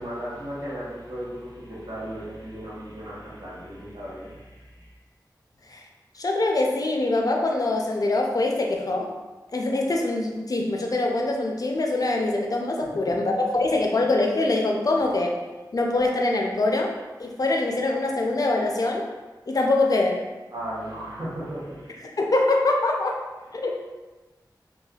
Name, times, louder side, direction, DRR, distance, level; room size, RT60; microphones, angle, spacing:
voice 1, 0.0-5.0 12.8-13.1 20.5-22.1 23.6-23.7, equal, 60° right, -8 dB, 1.0 m, -36 dB
voice 2, 6.1-9.1 9.5-15.4 15.7-16.9 17.2-19.1 19.5-20.2 22.2-23.2 23.5-23.7, left 2 dB, 50° left, 0 dB, 0.4 m, -24 dB
3.2 x 2.2 x 2.3 m, 1.2 s
wide cardioid pair, 70°, 8 cm